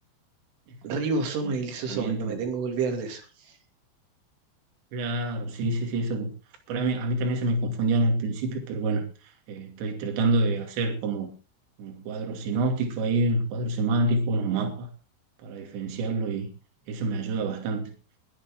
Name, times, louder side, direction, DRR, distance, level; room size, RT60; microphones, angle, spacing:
voice 1, 0.8-3.6, right 4 dB, 85° right, 5.1 m, -29 dB
voice 2, 1.9-2.4 4.9-6.3 6.7-9.0 9.5-11.3 11.8-14.9 15.4-16.5 16.9-17.9, right 2 dB, 65° right, 4.8 m, -27 dB
21.0 x 10.0 x 3.8 m
omnidirectional pair, 5.5 m